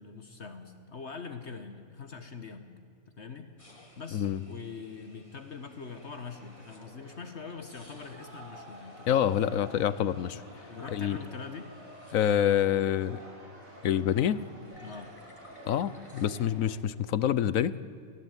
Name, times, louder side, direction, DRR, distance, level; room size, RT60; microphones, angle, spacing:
voice 1, 0.0-2.8 3.1-3.5 4.0-9.3 10.7-11.7 14.8-15.1, left 5 dB, 55° left, 8 dB, 1.6 m, -43 dB
sound 1, 3.6-7.1 7.5-13.1 13.3-16.3, left 1 dB, 20° left, 2.9 m, -59 dB
sound 2, 5.8-16.8, right 1 dB, 75° right, 5.2 m, -50 dB
voice 2, 9.1-10.4 10.9-11.2 12.1-13.2 13.8-14.4 15.7-17.7, left 10 dB, 75° left, 18 dB, 1.1 m, -26 dB
24.0 x 16.5 x 9.1 m, 2.3 s
omnidirectional pair, 1.5 m